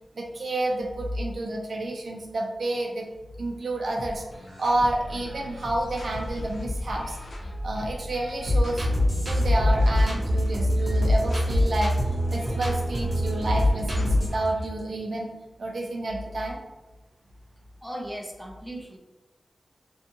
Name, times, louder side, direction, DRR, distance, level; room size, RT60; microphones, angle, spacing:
voice 1, 0.2-3.1 3.4-7.2 7.6-8.9 9.3-11.9 12.3-15.3 15.6-16.6, right 1 dB, 65° right, 0 dB, 0.4 m, -29 dB
sound 1, 4.0-14.8, left 1 dB, 75° left, 0.5 m, -38 dB
sound 2, 8.5-14.3, left 1 dB, 35° right, 0.7 m, -23 dB
voice 2, 17.8-19.0, right 1 dB, ahead, 0 dB, 0.4 m, -37 dB
2.6 x 2.4 x 2.7 m, 1.1 s
wide cardioid pair, 105°, 0 cm